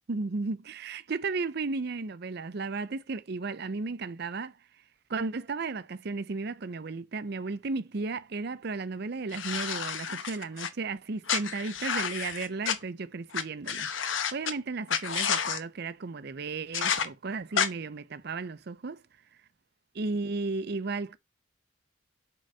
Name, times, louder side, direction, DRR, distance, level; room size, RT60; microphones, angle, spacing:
voice 1, 0.1-4.5 5.1-19.0 19.9-21.2, right 3 dB, 55° right, 0.6 m, -34 dB
sound 1, 9.3-10.7 11.3-12.8 13.3-13.4 13.7-14.5 14.9-15.6 16.7-17.1 17.6-17.7, left 7 dB, 75° left, 1.0 m, -30 dB
8.3 x 3.9 x 5.5 m
head